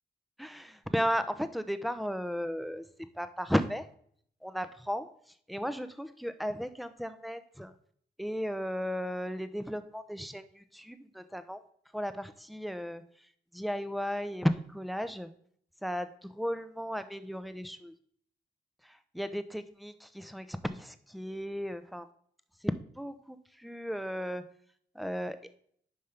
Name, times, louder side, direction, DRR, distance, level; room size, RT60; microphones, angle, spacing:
voice 1, 0.4-3.9 4.4-5.1 5.5-7.7 8.2-11.6 11.9-13.0 13.5-15.3 15.8-17.9 18.8-22.1 22.6-24.5 24.9-25.4, equal, ahead, 11 dB, 0.7 m, -35 dB
9.5 x 5.5 x 3.4 m, 0.62 s
cardioid pair, 70°, 18 cm